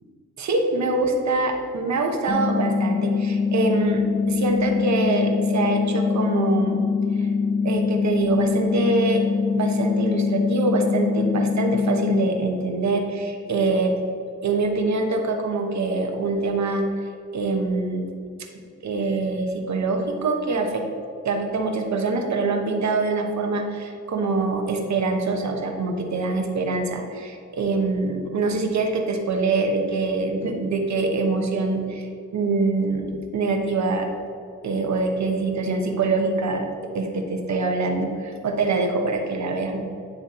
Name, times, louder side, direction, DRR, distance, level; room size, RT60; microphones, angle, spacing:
voice 1, 0.4-6.8 7.2-7.3 7.6-9.2 9.5-14.0 14.4-16.8 17.3-18.1 18.8-20.8 21.2-32.1 32.3-34.1 34.6-36.7 36.9-39.8, right 3 dB, 60° right, 4 dB, 1.0 m, -24 dB
sound 1, 2.3-12.3, left 5 dB, 20° left, 0.7 m, -23 dB
9.6 x 3.4 x 4.2 m, 2.5 s
cardioid pair, 65°, 31 cm